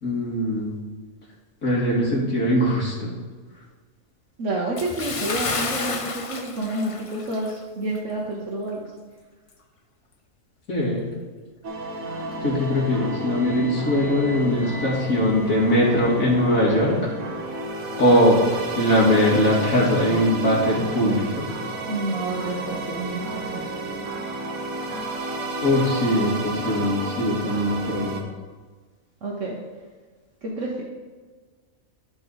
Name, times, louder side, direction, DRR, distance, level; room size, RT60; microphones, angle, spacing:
voice 1, 0.0-0.7 1.6-3.1 10.7-11.1 12.4-17.0 18.0-18.4 18.8-21.5 25.6-28.2, left 1 dB, 80° left, -6 dB, 2.7 m, -21 dB
voice 2, 4.4-8.8 21.9-23.2 23.5-23.7 29.2-29.6 30.4-30.8, right 2 dB, 65° right, -3 dB, 1.4 m, -29 dB
Bathtub (filling or washing) / Splash splatter, 4.8-7.6 7.9-8.1 8.7-8.8, left 4 dB, 45° left, 0.4 m, -30 dB
sound 1, 11.6-28.2, right 2 dB, 90° right, 1.5 m, -31 dB
13.0 x 4.4 x 4.0 m, 1.4 s
omnidirectional pair, 1.4 m